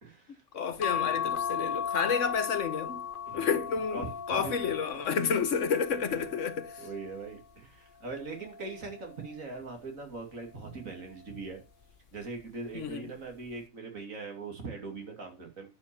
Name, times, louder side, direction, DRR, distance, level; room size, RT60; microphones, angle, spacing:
voice 1, 0.0-0.4 3.3-3.5 3.9-4.6 5.1-5.2 6.8-11.6 12.1-15.7, right 3 dB, 75° right, 3.0 m, -41 dB
voice 2, 0.5-3.1 3.3-6.9 12.7-13.1, left 6 dB, 65° left, 1.3 m, -30 dB
sound 1, 0.8-7.4 8.1-9.5 10.7-11.1 11.5-11.6, left 8 dB, 45° left, 0.9 m, -37 dB
10.0 x 6.1 x 6.8 m
omnidirectional pair, 1.4 m